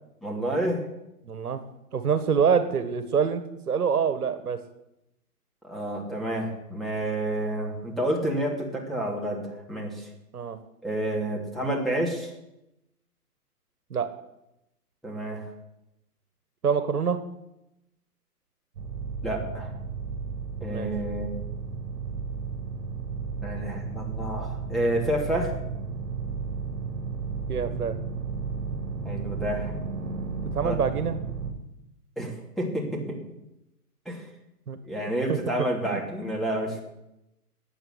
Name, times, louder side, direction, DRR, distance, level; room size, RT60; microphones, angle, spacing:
voice 1, 0.2-0.8 5.6-10.1 10.8-12.3 15.0-15.4 19.2-19.7 20.6-21.3 23.4-25.5 29.0-29.7 30.6-30.8 32.2-33.2 34.0-34.2 34.9-36.8, right 1 dB, ahead, -2 dB, 2.9 m, -29 dB
voice 2, 1.2-1.6 1.9-4.6 10.3-10.6 13.9-14.1 16.6-17.2 20.7-20.9 27.5-27.9 30.5-31.1 34.7-35.4 35.9-36.0, right 6 dB, 70° right, 11 dB, 1.8 m, -26 dB
sound 1, 18.7-31.5, right 5 dB, 50° right, 3.2 m, -33 dB
14.5 x 9.3 x 9.8 m, 0.89 s
hypercardioid pair, 140°, 47 cm